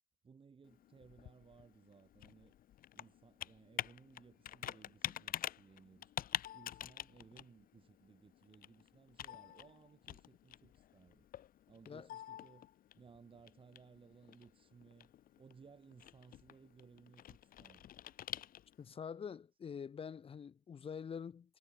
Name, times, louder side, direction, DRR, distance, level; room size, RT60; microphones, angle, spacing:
voice 1, 0.2-2.5 2.9-6.1 6.5-11.3 11.7-12.7 13.0-15.1 15.4-17.9, right 5 dB, 25° right, 4.5 m, -61 dB
Computer keyboard, 0.6-18.9, left 11 dB, 45° left, 1.4 m, -47 dB
voice 2, 18.8-21.6, left 7 dB, 25° left, 1.0 m, -46 dB
supercardioid pair, 105°, 21 cm